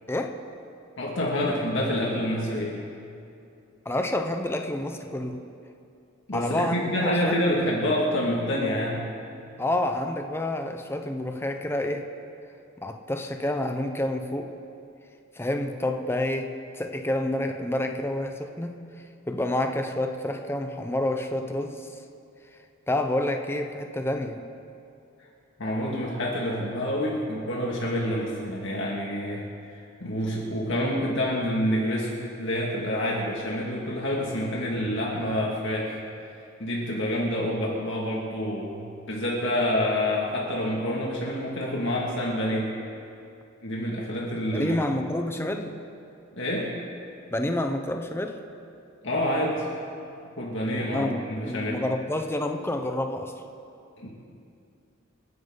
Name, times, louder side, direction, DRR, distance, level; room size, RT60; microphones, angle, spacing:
voice 1, 1.0-2.8 6.3-9.1 25.6-36.0 36.6-42.7 43.6-44.8 46.3-46.7 49.0-49.7 50.4-51.8 54.0-54.1, left 1 dB, 65° left, -4 dB, 2.2 m, -27 dB
voice 2, 3.8-5.4 6.3-7.4 9.6-12.1 12.8-14.5 15.4-18.8 19.3-21.8 22.9-24.4 44.5-45.8 47.3-48.4 50.9-51.2 51.5-53.3, left 1 dB, 10° left, 5 dB, 0.8 m, -28 dB
28.5 x 11.0 x 4.0 m, 2.5 s
head